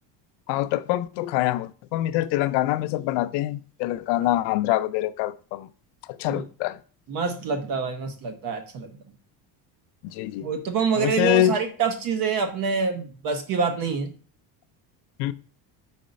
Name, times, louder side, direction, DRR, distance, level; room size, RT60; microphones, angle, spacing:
voice 1, 0.5-5.7 6.1-6.8 10.0-10.5 10.9-11.6 15.2-15.3, left 14 dB, 80° left, 0.5 m, -25 dB
voice 2, 7.1-8.9 10.4-14.1, right 5 dB, 55° right, 1.2 m, -26 dB
4.7 x 4.3 x 5.2 m
cardioid pair, 165°, 40 cm